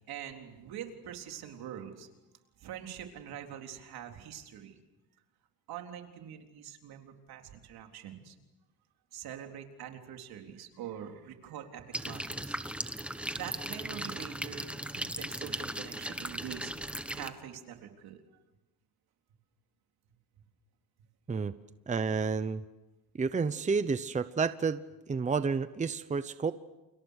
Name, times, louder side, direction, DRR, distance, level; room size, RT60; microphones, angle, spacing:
voice 1, 0.1-2.1 2.6-4.8 5.7-8.4 9.1-12.6 13.4-16.7 17.1-18.2, right 9 dB, 75° right, 4 dB, 3.8 m, -44 dB
sound 1, 11.9-17.3, right 1 dB, 5° right, 1.3 m, -37 dB
voice 2, 21.9-22.6 23.2-24.8 25.1-26.5, right 5 dB, 20° right, 12 dB, 0.9 m, -30 dB
30.0 x 30.0 x 6.6 m, 1.0 s
cardioid pair, 130°, 38 cm